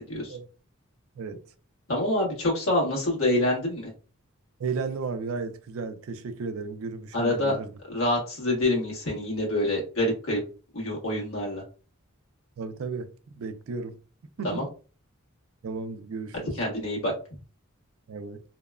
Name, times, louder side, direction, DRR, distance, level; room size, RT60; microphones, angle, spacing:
voice 1, 1.9-3.9 7.1-7.6 7.9-10.4 10.7-11.6 14.4-14.7 16.3-17.1, left 1 dB, 80° left, 1.3 m, -26 dB
voice 2, 4.6-7.7 12.6-14.0 14.4-14.6 15.6-16.5 18.1-18.4, right 4 dB, 75° right, 0.4 m, -34 dB
2.8 x 2.2 x 2.3 m
head